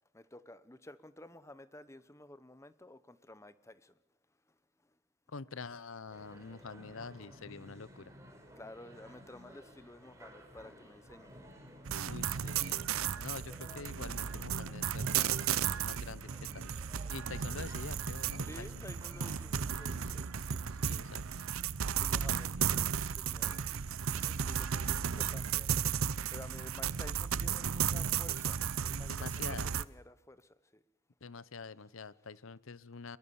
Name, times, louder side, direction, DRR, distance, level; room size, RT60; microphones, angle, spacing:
voice 1, 0.1-4.0 4.5-4.6 4.8-5.0 6.3-6.4 8.5-11.3 18.4-20.4 22.0-30.8, left 1 dB, 15° left, 14 dB, 0.9 m, -53 dB
voice 2, 5.3-8.1 12.0-12.9 13.2-15.6 15.8-16.8 17.1-18.9 20.8-21.4 29.1-29.7 31.2-33.2, left 4 dB, 70° left, 19 dB, 0.8 m, -46 dB
sound 1, 6.1-20.8, equal, 15° right, 4.5 m, -54 dB
sound 2, 11.8-29.8, right 8 dB, 75° right, 0.7 m, -34 dB
22.5 x 22.0 x 7.1 m, 0.98 s
head